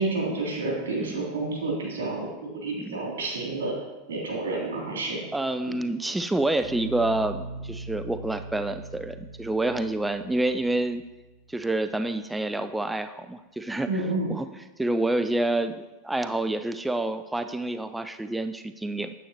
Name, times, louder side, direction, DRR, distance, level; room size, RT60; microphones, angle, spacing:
voice 1, 0.0-3.7 4.1-5.2 13.9-14.3, right 2 dB, 90° right, -3 dB, 3.1 m, -29 dB
voice 2, 5.3-11.0 11.5-14.0 14.3-14.5 14.8-19.1, right 2 dB, 5° right, 9 dB, 0.4 m, -28 dB
sound 1, 6.6-11.8, right 2 dB, 45° right, 1.9 m, -41 dB
9.1 x 8.7 x 2.9 m, 1.1 s
hypercardioid pair, 110°, 0 cm